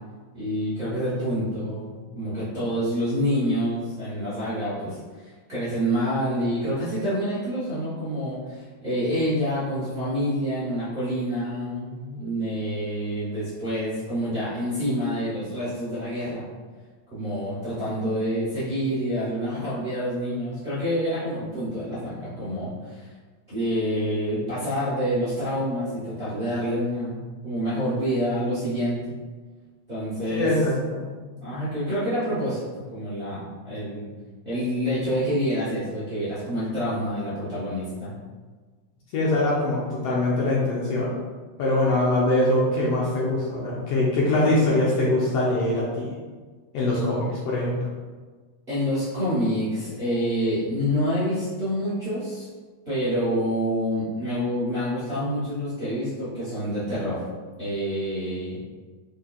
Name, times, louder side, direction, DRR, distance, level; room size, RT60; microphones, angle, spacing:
voice 1, 0.3-16.4 17.1-23.1 23.5-29.0 29.9-30.5 31.4-32.6 32.9-34.1 34.4-38.1 46.9-47.0 48.7-52.5 52.8-57.2 57.6-58.6, equal, 60° right, -12 dB, 0.5 m, -27 dB
voice 2, 30.3-31.0 39.1-41.1 41.6-46.1 46.7-47.8, left 1 dB, 80° left, -5 dB, 1.4 m, -23 dB
5.8 x 3.3 x 2.3 m, 1.4 s
omnidirectional pair, 3.6 m